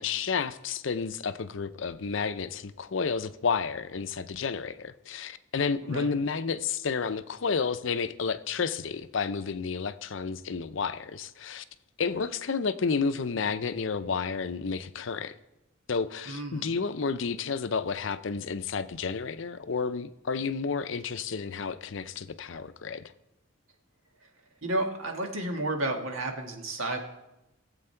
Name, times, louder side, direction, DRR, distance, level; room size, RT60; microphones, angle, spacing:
voice 1, 0.0-11.6 12.0-15.3 15.9-23.1, left 5 dB, 65° left, 0.6 m, -31 dB
voice 2, 16.3-16.8 24.6-27.0, right 2 dB, 90° right, 1.8 m, -32 dB
17.0 x 7.8 x 4.5 m
head